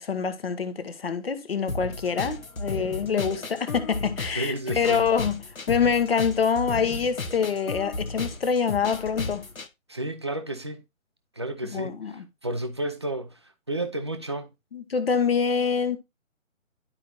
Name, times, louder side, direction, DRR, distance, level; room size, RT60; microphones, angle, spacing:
voice 1, 0.0-5.4 5.7-9.4 11.7-12.2 14.7-16.0, left 6 dB, 45° left, 1.2 m, -25 dB
sound 1, 1.7-9.7, left 3 dB, 85° left, 1.1 m, -34 dB
voice 2, 4.3-5.0 9.9-10.8 11.4-14.5, right 1 dB, 20° right, 0.5 m, -32 dB
11.5 x 4.8 x 2.7 m
figure-of-eight pair, 145°, 40 cm